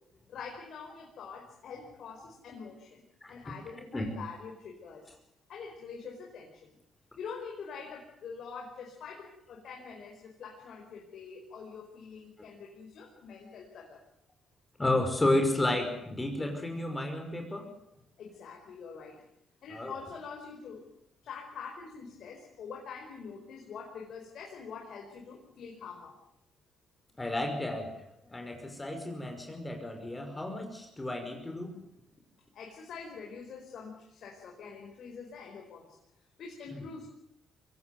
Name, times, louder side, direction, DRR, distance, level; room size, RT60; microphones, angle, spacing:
voice 1, 0.3-5.1 5.5-6.8 7.2-14.0 18.2-19.2 19.6-20.8 21.2-26.1 32.5-36.0 36.4-37.1, left 5 dB, 70° left, 0 dB, 5.2 m, -45 dB
voice 2, 14.8-17.7 19.7-19.9 27.2-27.9 28.3-31.8, left 1 dB, 15° left, 4 dB, 5.4 m, -31 dB
23.5 x 17.5 x 9.6 m, 0.81 s
cardioid pair, 90°, 0 cm